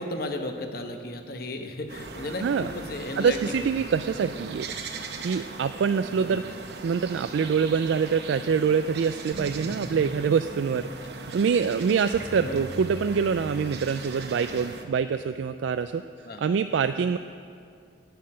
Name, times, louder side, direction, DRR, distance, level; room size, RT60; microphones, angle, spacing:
voice 1, 0.0-3.6 6.2-6.4 9.7-9.8 12.4-12.7 16.2-16.4, left 1 dB, 55° left, 5 dB, 1.0 m, -34 dB
sound 1, 1.9-14.8, right 4 dB, 65° right, 0.8 m, -40 dB
voice 2, 2.2-2.7 3.2-4.7 5.2-6.4 6.8-16.0 16.4-17.2, right 6 dB, 90° right, 10 dB, 0.3 m, -25 dB
sound 2, 9.3-14.9, left 1 dB, 25° right, 1.3 m, -42 dB
10.5 x 7.5 x 8.7 m, 2.3 s
head